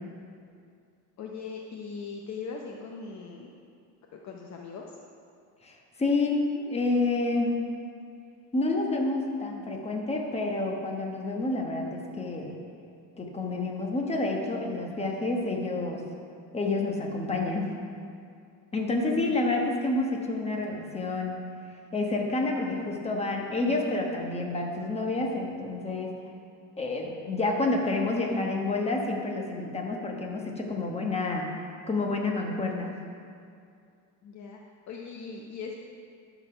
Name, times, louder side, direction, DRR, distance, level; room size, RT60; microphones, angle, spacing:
voice 1, 1.2-3.5 4.1-5.0 34.2-34.6 34.9-35.8, left 5 dB, 45° left, 0 dB, 0.7 m, -40 dB
voice 2, 5.6-7.5 8.5-12.5 13.2-16.0 16.5-17.7 18.7-21.3 21.9-26.1 26.8-31.5 31.9-32.9, left 2 dB, 15° left, 0 dB, 1.2 m, -29 dB
12.0 x 4.1 x 5.6 m, 2.4 s
cardioid pair, 120°, 40 cm